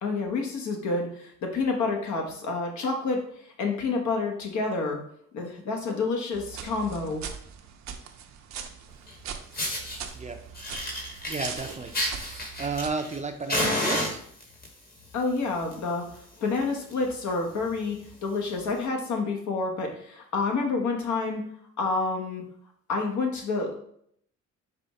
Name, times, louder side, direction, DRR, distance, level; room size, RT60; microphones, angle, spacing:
voice 1, 0.0-3.2 3.6-5.0 5.3-7.2 15.1-16.1 16.4-21.4 21.8-22.4 22.9-23.8, left 3 dB, 70° left, 2 dB, 1.2 m, -28 dB
sound 1, 6.3-12.9, right 8 dB, 65° right, 0.6 m, -41 dB
Fire, 9.1-9.2 9.5-10.0 10.5-13.2 13.5-14.7 15.5-15.7 16.1-16.2 16.5-16.6 16.9-17.1 17.7-17.8 18.7-18.8, left 1 dB, 30° left, 1.2 m, -30 dB
voice 2, 11.3-14.2, right 4 dB, 25° right, 5 dB, 0.5 m, -33 dB
4.9 x 2.4 x 4.1 m, 0.67 s
cardioid pair, 90°, 30 cm